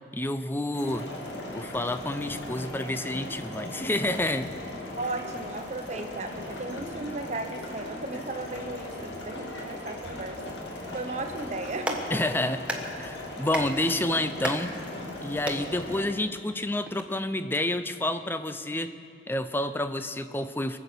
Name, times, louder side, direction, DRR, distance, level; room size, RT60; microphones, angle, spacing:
voice 1, 0.1-1.1 1.5-4.5 12.1-12.6 13.0-14.7 15.2-18.9 19.3-20.8, left 1 dB, 10° left, 11 dB, 0.5 m, -29 dB
sound 1, 0.7-16.0, left 1 dB, 80° left, 2.2 m, -38 dB
voice 2, 5.0-10.6 10.9-12.3, right 2 dB, 40° right, 6 dB, 1.1 m, -36 dB
Clapping, 11.7-17.0, right 1 dB, 5° right, 1.2 m, -37 dB
23.0 x 8.1 x 6.9 m, 2.4 s
head